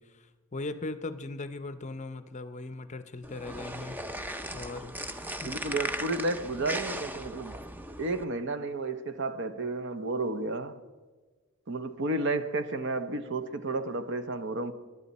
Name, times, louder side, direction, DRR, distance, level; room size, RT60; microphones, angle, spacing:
voice 1, 0.0-4.0 4.5-5.5, left 2 dB, 30° left, 0.6 m, -39 dB
sound 1, 3.2-8.2, right 1 dB, 10° right, 0.5 m, -37 dB
voice 2, 5.4-7.6 8.0-10.8 11.7-14.7, right 2 dB, 55° right, 0.8 m, -32 dB
23.5 x 11.0 x 4.2 m
head